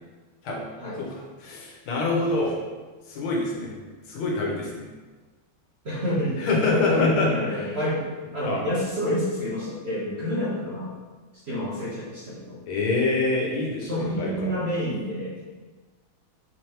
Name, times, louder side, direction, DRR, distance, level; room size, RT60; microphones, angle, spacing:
voice 1, 1.0-2.6 3.1-4.9 6.4-7.7 8.4-8.6 12.6-14.5, left 2 dB, 85° left, -2 dB, 1.7 m, -26 dB
voice 2, 5.8-6.4 6.7-8.1 8.3-10.9 11.4-12.6 13.8-15.4, left 1 dB, 45° right, -9 dB, 0.9 m, -28 dB
5.4 x 3.2 x 3.0 m, 1.3 s
omnidirectional pair, 2.2 m